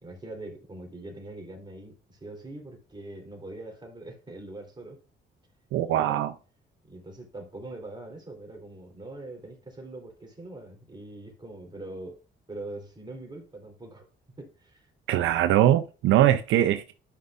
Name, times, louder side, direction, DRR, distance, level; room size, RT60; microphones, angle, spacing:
voice 1, 0.0-5.0 5.9-6.2 6.8-12.2 12.5-14.1 14.4-14.9, right 2 dB, 20° right, 3.6 m, -42 dB
voice 2, 5.7-6.3 15.1-16.9, right 12 dB, 85° right, 0.6 m, -22 dB
11.5 x 5.5 x 2.5 m
cardioid pair, 90°, 20 cm